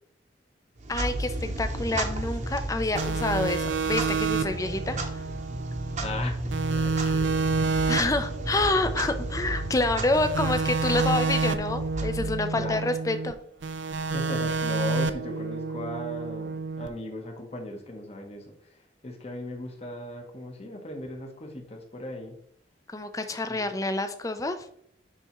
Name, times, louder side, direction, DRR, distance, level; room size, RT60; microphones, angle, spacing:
Clock, 0.8-12.7, right 1 dB, 40° right, 0.8 m, -33 dB
voice 1, 0.9-5.2 7.0-7.2 7.9-13.4 22.9-24.7, left 2 dB, 20° left, 9 dB, 0.4 m, -28 dB
sound 1, 2.9-6.2 6.5-9.8 10.1-13.3 13.6-16.9, right 4 dB, 75° right, 0.4 m, -29 dB
voice 2, 6.0-7.4 7.8-7.9 12.5-12.8 14.1-18.4 19.0-22.4 23.5-23.6, left 1 dB, 35° left, 2 dB, 0.9 m, -37 dB
9.8 x 3.5 x 3.0 m, 0.66 s
head